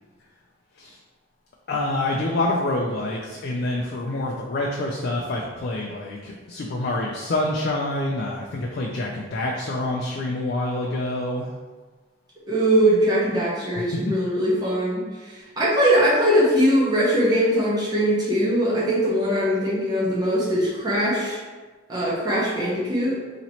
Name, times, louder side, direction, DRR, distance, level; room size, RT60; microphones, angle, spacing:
voice 1, 1.7-11.5 13.9-14.0, left 2 dB, 55° left, -1 dB, 0.4 m, -27 dB
voice 2, 12.5-15.1 15.3-21.4 21.9-23.2, equal, 20° right, -8 dB, 0.8 m, -21 dB
2.9 x 2.9 x 4.0 m, 1.3 s
head